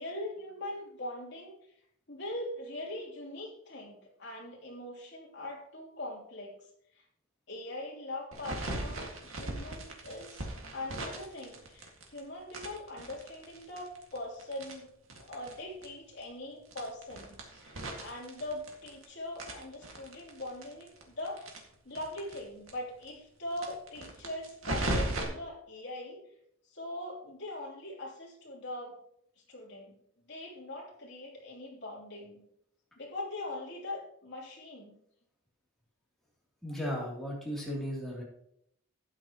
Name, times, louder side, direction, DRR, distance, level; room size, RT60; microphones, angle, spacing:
voice 1, 0.0-1.5 2.1-6.5 6.9-7.0 7.5-10.4 10.7-14.9 15.3-20.9 21.2-21.6 21.8-26.2 26.7-29.0 29.4-29.9 30.3-32.4 33.0-34.9, left 1 dB, 55° left, -3 dB, 3.2 m, -41 dB
sound 1, 8.3-12.2 12.5-15.5 15.8-15.9 16.2-16.3 16.7-19.0 19.3-22.4 22.7-22.8 23.0-23.1 23.5-25.2, right 1 dB, 80° right, 2.0 m, -37 dB
voice 2, 36.6-38.2, equal, ahead, -5 dB, 3.0 m, -35 dB
12.0 x 9.1 x 3.0 m, 0.72 s
head